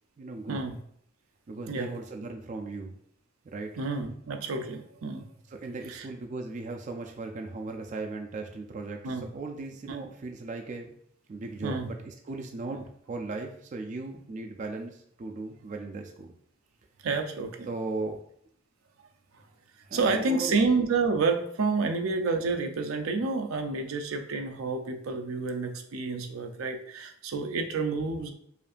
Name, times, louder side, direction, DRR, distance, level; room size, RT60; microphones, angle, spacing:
voice 1, 0.2-0.6 1.5-3.0 3.4-3.8 5.5-10.9 11.3-16.3 17.7-18.2 19.8-20.6, right 3 dB, 35° right, 3 dB, 0.3 m, -37 dB
voice 2, 3.8-5.3 5.9-6.1 9.0-9.3 9.9-10.0 11.6-11.9 12.7-12.8 17.0-17.7 19.9-28.3, right 4 dB, 85° right, 6 dB, 0.5 m, -29 dB
5.0 x 2.6 x 2.5 m, 0.66 s
head